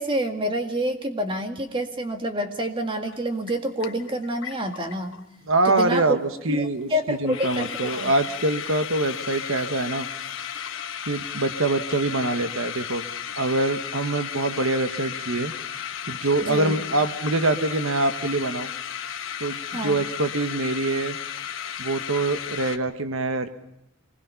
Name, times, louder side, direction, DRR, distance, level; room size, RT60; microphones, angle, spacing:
voice 1, 0.0-5.1 5.7-6.2 6.5-8.1 16.4-16.8 19.7-20.0, right 1 dB, 25° right, 5 dB, 1.9 m, -28 dB
sound 1, 3.1-3.2 3.5-5.2 5.5-5.6 5.8-6.1 6.3-6.4 6.8-6.9 7.1-22.8, left 9 dB, 65° left, 1.2 m, -34 dB
voice 2, 5.5-10.1 11.0-13.0 13.4-15.5 16.1-18.7 19.4-21.2 21.8-23.5, right 2 dB, 70° right, 9 dB, 1.3 m, -24 dB
25.5 x 20.0 x 5.7 m, 0.85 s
head